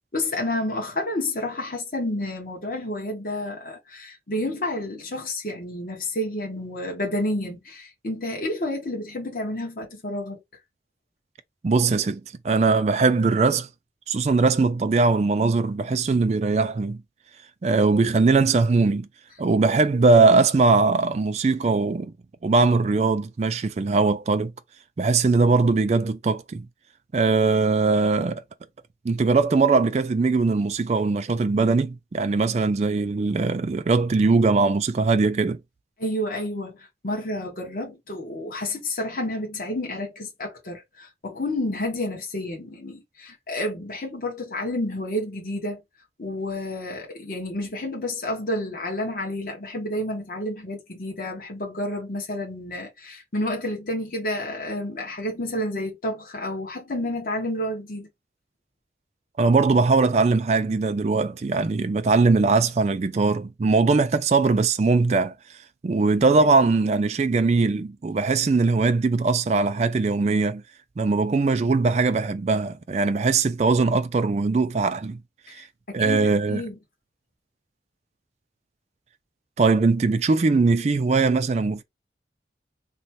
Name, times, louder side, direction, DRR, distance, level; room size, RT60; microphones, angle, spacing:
voice 1, 0.1-10.4 36.0-45.8 46.2-58.1 66.2-66.3 75.5-76.8, left 1 dB, 50° left, 1.1 m, -30 dB
voice 2, 11.6-13.7 14.1-17.0 17.6-19.1 19.4-22.1 22.4-24.5 25.0-26.7 27.1-28.4 29.0-35.6 59.4-65.3 65.8-70.6 71.0-75.2 75.5-75.6 75.9-76.6 79.6-81.8, right 4 dB, 40° right, 0.3 m, -21 dB
3.1 x 2.1 x 4.1 m
head